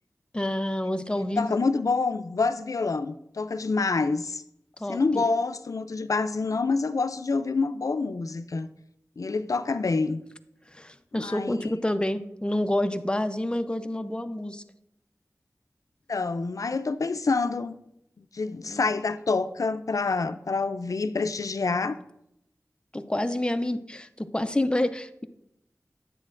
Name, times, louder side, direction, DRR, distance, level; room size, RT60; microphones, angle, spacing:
voice 1, 0.3-1.5 4.8-5.2 10.7-14.6 18.6-18.9 22.9-25.3, left 1 dB, 15° left, 0.5 m, -28 dB
voice 2, 1.4-4.4 4.9-8.7 9.2-10.2 11.1-11.7 16.1-17.8 18.2-22.0, left 4 dB, 75° left, 0.4 m, -27 dB
9.6 x 8.0 x 2.5 m
wide cardioid pair, 70°, 6 cm